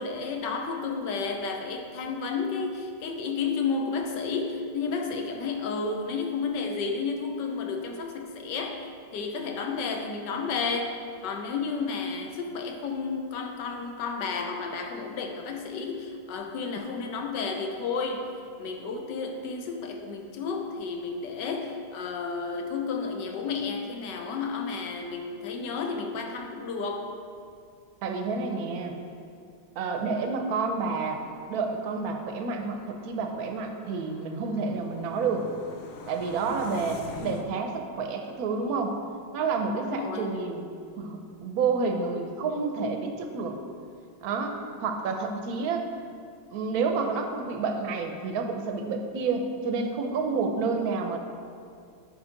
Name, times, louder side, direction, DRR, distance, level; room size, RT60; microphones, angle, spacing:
voice 1, 0.0-8.8 9.1-10.9 11.2-18.3 18.6-27.1 39.7-40.3, left 4 dB, 65° left, 4 dB, 1.4 m, -32 dB
voice 2, 28.0-28.9 29.8-31.2 31.5-35.5 36.1-39.0 39.3-43.6 44.2-45.8 46.5-51.2, right 4 dB, 60° right, 4 dB, 1.0 m, -29 dB
sound 1, 30.3-37.4, left 5 dB, 85° left, 1.5 m, -46 dB
8.0 x 5.5 x 5.1 m, 2.3 s
omnidirectional pair, 2.2 m